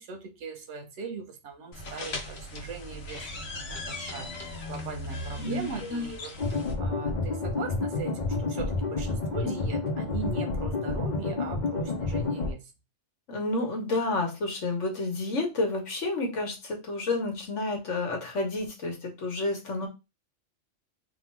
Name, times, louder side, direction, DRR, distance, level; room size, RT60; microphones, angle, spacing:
voice 1, 0.0-12.7, right 5 dB, 80° right, 1.2 m, -40 dB
sound 1, 1.7-6.7, left 1 dB, 65° left, 1.2 m, -38 dB
voice 2, 5.4-6.1 13.3-19.9, left 2 dB, 85° left, 1.6 m, -30 dB
sound 2, 6.4-12.5, left 3 dB, 45° left, 0.8 m, -29 dB
3.7 x 2.4 x 4.5 m
omnidirectional pair, 1.2 m